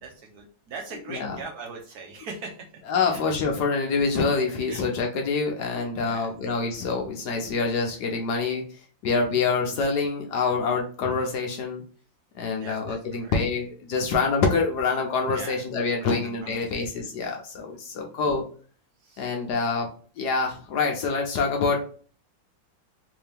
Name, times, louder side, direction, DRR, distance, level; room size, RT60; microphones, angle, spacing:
voice 1, 0.0-2.5 3.0-3.2 4.7-4.8 6.0-6.3 9.6-9.7 12.5-13.3 15.3-15.6 16.0-16.9 18.0-18.1 19.0-19.3, right 4 dB, 65° right, 0 dB, 1.0 m, -41 dB
voice 2, 2.9-8.6 9.0-11.8 12.3-18.4 19.2-19.9 20.2-21.8, left 4 dB, 70° left, 2 dB, 1.1 m, -26 dB
3.4 x 2.7 x 3.3 m, 0.42 s
omnidirectional pair, 2.1 m